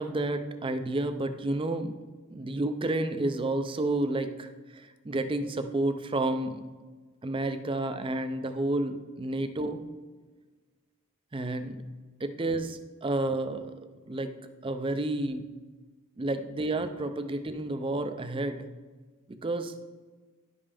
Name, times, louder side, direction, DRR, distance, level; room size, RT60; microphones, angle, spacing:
voice 1, 0.0-1.9 2.3-6.6 7.2-9.8 11.3-11.8 12.2-13.7 14.1-14.3 14.6-15.4 16.2-18.7 19.3-19.7, right 2 dB, 25° right, 9 dB, 0.4 m, -30 dB
11.0 x 5.4 x 3.4 m, 1.3 s
head